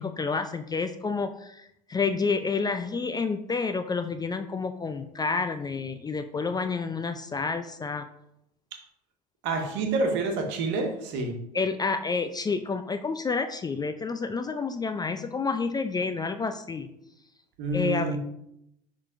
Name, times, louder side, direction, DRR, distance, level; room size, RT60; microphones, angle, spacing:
voice 1, 0.0-8.1 11.5-16.9 17.7-18.2, left 4 dB, 20° left, 9 dB, 0.4 m, -29 dB
voice 2, 9.4-11.4 17.6-18.2, right 3 dB, 60° right, 3 dB, 1.4 m, -28 dB
10.5 x 3.8 x 2.5 m, 0.78 s
hypercardioid pair, 75°, 21 cm